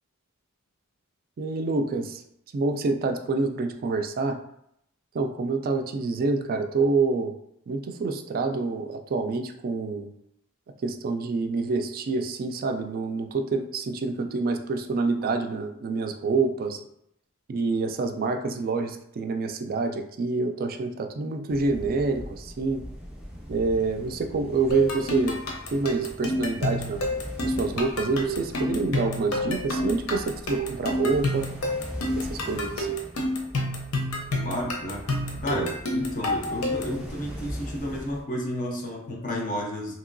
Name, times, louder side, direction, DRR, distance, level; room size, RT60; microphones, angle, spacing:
voice 1, 1.4-2.2 2.5-4.4 5.1-7.3 7.7-10.1 10.8-16.8 17.5-22.8 23.5-25.4 25.7-27.1 27.4-31.5 32.1-32.9, right 3 dB, 45° right, 6 dB, 0.3 m, -27 dB
sound 1, 21.5-38.2, equal, 5° right, 0.7 m, -41 dB
sound 2, 24.7-37.0, left 1 dB, 75° left, 0.7 m, -29 dB
voice 2, 34.4-40.0, equal, 40° left, 0 dB, 0.5 m, -32 dB
2.9 x 2.8 x 2.6 m, 0.75 s
head